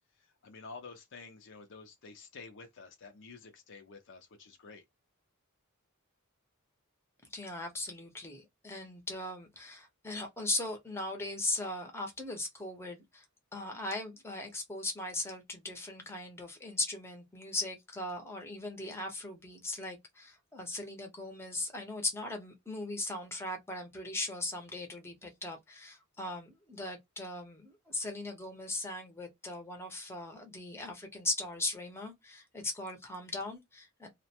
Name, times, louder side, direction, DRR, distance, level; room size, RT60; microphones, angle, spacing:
voice 1, 0.2-4.8, left 4 dB, 60° left, 0.6 m, -50 dB
voice 2, 7.3-13.2 13.5-34.1, left 2 dB, 10° left, 0.8 m, -38 dB
2.4 x 2.1 x 2.8 m
head